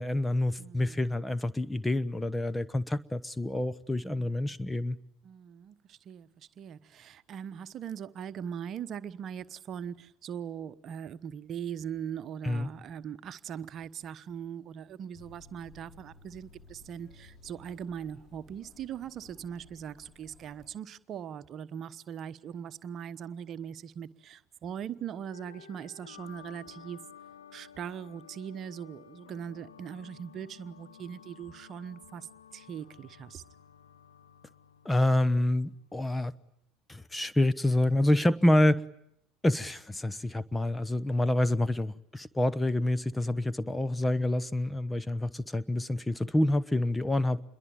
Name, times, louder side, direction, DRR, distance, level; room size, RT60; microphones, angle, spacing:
voice 1, 0.0-5.0 12.4-12.7 34.8-36.3 36.9-38.8 39.4-47.4, left 1 dB, 10° left, 1.1 m, -27 dB
voice 2, 0.6-1.0 4.0-4.6 5.2-27.0 27.5-33.4, right 8 dB, 45° right, 1.1 m, -40 dB
sound 1, 15.1-20.8, left 4 dB, 40° left, 2.6 m, -56 dB
sound 2, 25.3-36.3, left 8 dB, 80° left, 2.3 m, -54 dB
28.0 x 22.5 x 9.0 m
hypercardioid pair, 70°, 0 cm